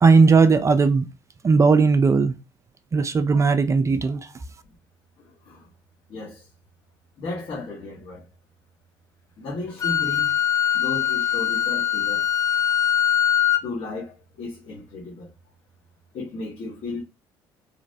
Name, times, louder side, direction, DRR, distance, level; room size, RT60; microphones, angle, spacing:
voice 1, 0.0-1.1 1.4-2.3 2.9-4.2, right 4 dB, 25° right, 0.3 m, -17 dB
voice 2, 6.1-6.4 7.2-8.2 9.4-10.3 10.7-12.2 13.6-15.3 16.1-17.0, left 3 dB, 55° left, 1.2 m, -34 dB
Wind instrument woodwind instrument, 9.8-13.7, left 10 dB, 30° left, 0.6 m, -22 dB
3.0 x 2.0 x 2.6 m
hypercardioid pair, 60°, 11 cm